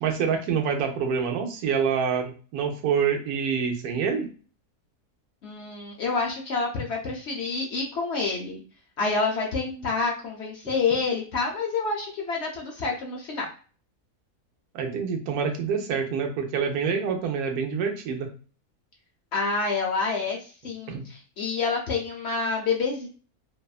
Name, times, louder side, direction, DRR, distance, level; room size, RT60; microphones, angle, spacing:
voice 1, 0.0-4.3 14.7-18.3 20.9-21.0, right 6 dB, 85° right, 4 dB, 1.1 m, -26 dB
voice 2, 5.4-8.6 9.0-13.5 19.3-23.1, left 4 dB, 60° left, 0 dB, 0.7 m, -28 dB
2.7 x 2.1 x 2.3 m, 0.38 s
omnidirectional pair, 1.5 m